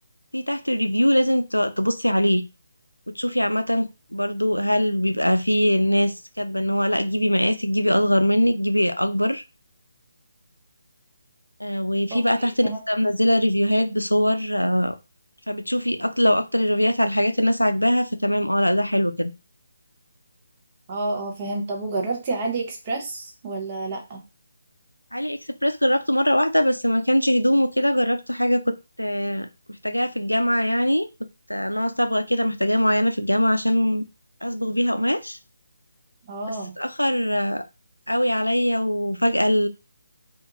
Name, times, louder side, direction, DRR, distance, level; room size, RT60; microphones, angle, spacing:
voice 1, 0.3-2.4 3.1-9.4 11.6-15.0 15.5-19.3 25.1-29.5 29.8-31.1 31.5-34.0 34.4-35.4 36.5-37.6 38.1-39.7, equal, 85° left, 9 dB, 0.3 m, -22 dB
voice 2, 12.1-12.8 20.9-24.2 36.2-36.8, right 2 dB, 25° right, 1 dB, 0.7 m, -29 dB
2.4 x 2.3 x 2.9 m, 0.27 s
figure-of-eight pair, 150°, 0 cm